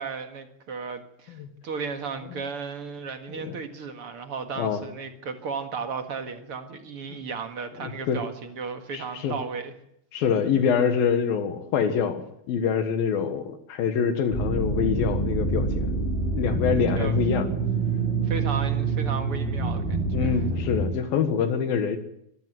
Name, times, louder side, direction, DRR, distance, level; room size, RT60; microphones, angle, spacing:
voice 1, 0.0-9.7 16.9-17.1 18.2-20.3, right 5 dB, 45° right, 7 dB, 2.1 m, -35 dB
voice 2, 7.8-8.2 8.9-9.4 10.1-13.4 13.7-16.1 16.3-17.5 20.1-22.0, left 7 dB, 70° left, 9 dB, 3.2 m, -25 dB
sound 1, 14.3-20.9, right 3 dB, 20° left, 2.9 m, -26 dB
25.0 x 14.0 x 9.3 m, 0.75 s
omnidirectional pair, 4.4 m